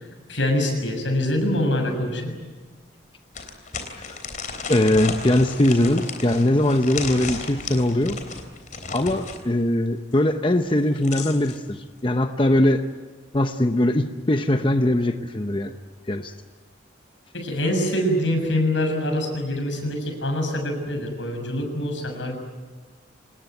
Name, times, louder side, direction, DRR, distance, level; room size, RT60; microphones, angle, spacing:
voice 1, 0.3-2.3 17.3-22.3, left 1 dB, 85° left, 4 dB, 6.7 m, -24 dB
sound 1, 1.9-2.0 2.4-2.5 3.3-9.4 10.7-11.6, left 4 dB, 45° left, 3.5 m, -34 dB
voice 2, 4.7-8.2 8.9-12.8 13.3-15.8 16.1-16.3, left 1 dB, 25° left, 7 dB, 0.8 m, -21 dB
26.0 x 20.0 x 9.3 m, 1.3 s
head